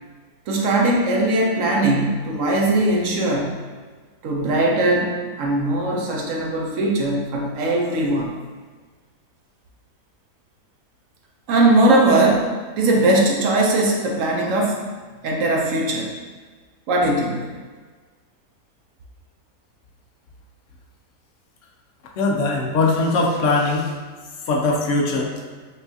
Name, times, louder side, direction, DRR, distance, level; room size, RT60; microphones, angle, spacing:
voice 1, 0.5-3.6 4.2-8.3 11.5-12.5 12.8-14.9 15.2-16.1 16.9-17.5, right 2 dB, 65° right, -1 dB, 0.9 m, -20 dB
voice 2, 22.2-23.9 24.5-25.3, left 3 dB, 65° left, 0 dB, 0.9 m, -20 dB
5.5 x 2.4 x 2.7 m, 1.4 s
omnidirectional pair, 1.6 m